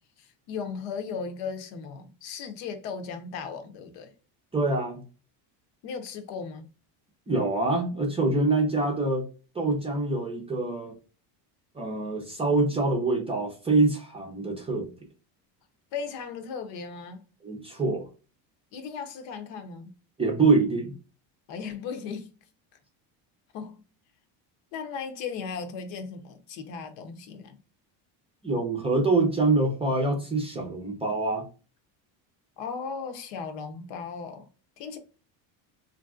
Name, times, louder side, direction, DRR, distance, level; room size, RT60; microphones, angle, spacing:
voice 1, 0.2-4.1 5.8-6.7 15.9-17.2 18.7-19.9 21.5-22.4 23.5-23.8 24.7-27.6 32.6-34.5 34.8-35.0, left 5 dB, 65° left, 0.8 m, -36 dB
voice 2, 4.5-5.0 7.3-9.3 9.5-10.9 11.7-14.9 17.4-18.0 20.2-20.9 28.4-31.5, right 3 dB, 15° right, 0.5 m, -25 dB
3.5 x 2.6 x 2.3 m
cardioid pair, 145°, 46 cm